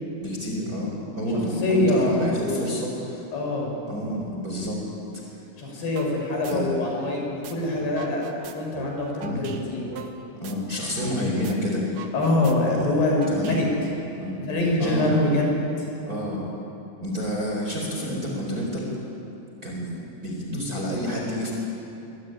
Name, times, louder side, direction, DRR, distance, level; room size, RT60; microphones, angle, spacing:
voice 1, 0.2-3.2 3.9-4.8 6.5-6.7 9.2-9.5 10.4-11.8 12.7-12.9 13.3-13.6 14.2-14.4 14.8-15.2 16.1-16.4 17.0-18.9 19.6-21.5, equal, 20° right, -1 dB, 4.3 m, -29 dB
voice 2, 1.3-2.7 3.3-3.7 5.6-8.2 8.5-9.8 12.1-13.7 14.4-15.9, left 2 dB, 60° left, 0 dB, 7.4 m, -24 dB
sound 1, 6.0-6.1 6.4-7.5 7.8-11.2 11.4-11.5 11.8-13.9, right 6 dB, 60° right, 2.5 m, -41 dB
24.0 x 23.0 x 9.9 m, 3.0 s
omnidirectional pair, 5.5 m